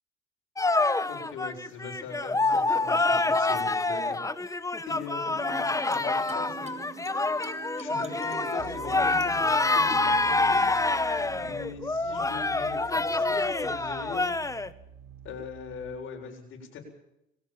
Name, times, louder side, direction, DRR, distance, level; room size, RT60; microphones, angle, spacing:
sound 1, 0.6-14.7, left 2 dB, 15° left, 1.3 m, -27 dB
voice 1, 1.1-4.6 4.9-6.8 7.8-10.7 11.4-14.3 15.2-16.8, left 5 dB, 85° left, 2 dB, 7.7 m, -41 dB
sound 2, 5.3-12.3, right 6 dB, 35° right, 3.6 m, -46 dB
sound 3, 8.6-16.0, right 8 dB, 75° right, 4.9 m, -49 dB
22.5 x 18.0 x 7.4 m, 0.83 s
cardioid pair, 90°, 20 cm